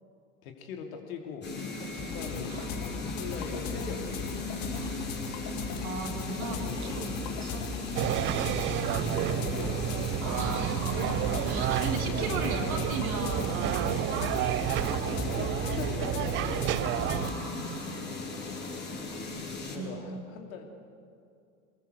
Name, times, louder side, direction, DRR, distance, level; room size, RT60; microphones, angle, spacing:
voice 1, 0.4-2.6 2.9-4.3 6.6-7.0 8.8-10.0 11.9-13.1 14.3-14.5 14.8-15.1 15.3-16.6 18.1-18.3 19.5-20.7, left 5 dB, 60° left, 3 dB, 2.9 m, -41 dB
sound 1, 1.4-19.8, left 3 dB, 20° left, 5.3 m, -37 dB
sound 2, 2.0-17.3, left 5 dB, 40° left, 1.9 m, -39 dB
voice 2, 4.7-5.1 5.8-7.7 10.2-11.2 11.4-14.3 16.9-18.0 19.2-19.9, right 4 dB, 65° right, 2 dB, 3.4 m, -37 dB
sound 3, 7.9-17.3, right 14 dB, 25° right, 0.5 m, -30 dB
24.0 x 19.5 x 6.7 m, 2.4 s
figure-of-eight pair, 80°, 46 cm